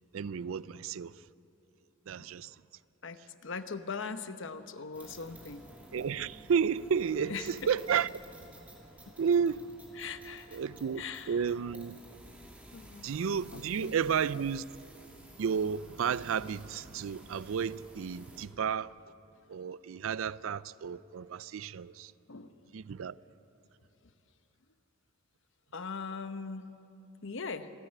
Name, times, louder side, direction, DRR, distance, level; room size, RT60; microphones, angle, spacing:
voice 1, 0.1-1.2 2.1-2.6 5.9-8.1 9.2-9.7 10.5-12.0 13.0-14.7 15.4-18.9 19.5-22.1 22.7-23.2, right 7 dB, 75° right, 0.4 m, -32 dB
voice 2, 3.0-5.6 7.3-7.5 9.1-9.2 10.0-10.6 10.9-11.5 12.7-13.1 13.5-14.0 22.3-22.5 25.7-26.7 27.2-27.7, left 5 dB, 65° left, 0.9 m, -40 dB
sound 1, 4.9-18.5, right 1 dB, 10° right, 2.8 m, -53 dB
27.5 x 9.8 x 9.9 m
head